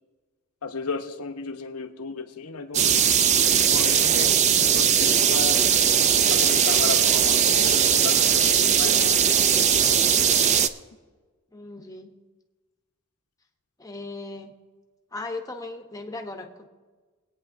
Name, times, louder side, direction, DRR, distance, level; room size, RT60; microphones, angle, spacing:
voice 1, 0.6-3.0 3.6-5.6 6.3-9.2, left 4 dB, 85° left, 6 dB, 0.9 m, -34 dB
sound 1, 2.7-10.7, right 8 dB, 30° right, 0.3 m, -19 dB
voice 2, 11.5-12.1 13.8-14.5 15.1-16.7, left 2 dB, 15° left, 4 dB, 0.8 m, -37 dB
22.5 x 9.2 x 2.6 m, 1.3 s
head